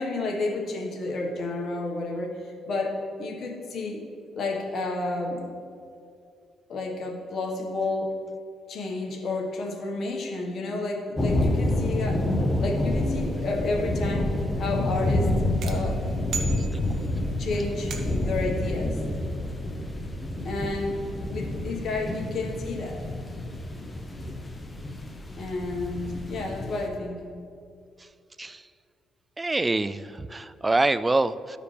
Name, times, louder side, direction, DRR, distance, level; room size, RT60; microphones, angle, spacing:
voice 1, 0.0-4.0 4.3-5.4 6.7-8.1 8.7-14.3 14.6-15.3 15.6-16.0 17.4-19.0 20.4-21.0 21.3-23.1 25.4-27.2, left 2 dB, 60° left, 0 dB, 1.4 m, -31 dB
sound 1, 11.2-26.9, left 1 dB, 20° left, 0.9 m, -28 dB
sound 2, 15.6-17.2 17.9-18.4, right 5 dB, 65° right, 1.0 m, -37 dB
voice 2, 29.4-31.6, right 2 dB, 20° right, 14 dB, 0.3 m, -25 dB
14.0 x 4.9 x 3.4 m, 2.4 s
cardioid pair, 90°, 0 cm